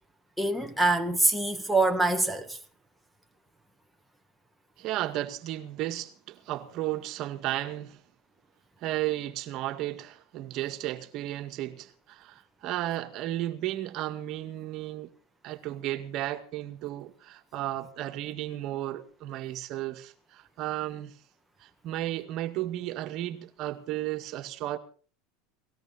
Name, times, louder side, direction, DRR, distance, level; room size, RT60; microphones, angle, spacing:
voice 1, 0.4-2.6, right 2 dB, 5° right, 2.1 m, -25 dB
voice 2, 4.8-8.0 8.8-15.1 15.4-21.1 21.6-24.8, right 14 dB, 50° right, 2.0 m, -34 dB
19.0 x 17.0 x 4.2 m
supercardioid pair, 110°, 0 cm